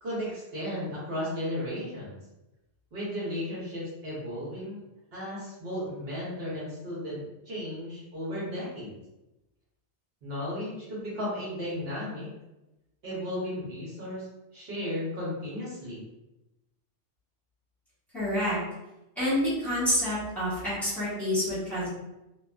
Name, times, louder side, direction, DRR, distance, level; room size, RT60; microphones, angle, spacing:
voice 1, 0.0-2.2 2.9-4.8 5.1-9.0 10.2-12.3 13.0-14.3 14.5-16.0, left 1 dB, 65° right, -8 dB, 1.1 m, -35 dB
voice 2, 18.1-18.6 19.2-21.9, left 1 dB, ahead, -12 dB, 1.4 m, -28 dB
2.6 x 2.3 x 2.3 m, 0.95 s
omnidirectional pair, 1.1 m